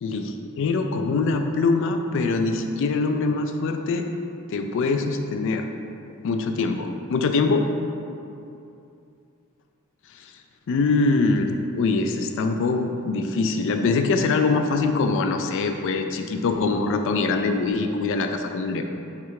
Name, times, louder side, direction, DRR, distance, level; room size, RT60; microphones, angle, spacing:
voice 1, 0.0-4.1 4.5-5.7 6.2-7.7 10.7-18.8, left 3 dB, 60° left, 6 dB, 0.3 m, -23 dB
3.6 x 3.2 x 4.6 m, 2.7 s
head